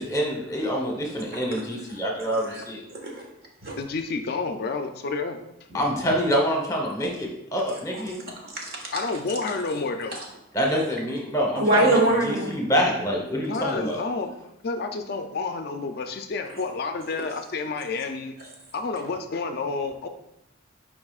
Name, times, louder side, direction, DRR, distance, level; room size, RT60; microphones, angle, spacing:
voice 1, 0.0-2.8 5.7-8.2 10.5-11.9 12.2-14.0, equal, 15° left, 0 dB, 1.0 m, -26 dB
voice 2, 2.3-2.6 2.9-3.2 3.6-3.8 6.0-6.1 7.9-8.0 8.4-8.9 10.1-10.2 11.6-12.5, right 1 dB, 50° right, -1 dB, 1.4 m, -24 dB
voice 3, 3.8-5.5 8.9-10.2 13.5-14.3 14.6-18.3 18.7-20.1, left 4 dB, 50° left, 7 dB, 0.4 m, -30 dB
9.5 x 4.8 x 2.4 m, 0.89 s
head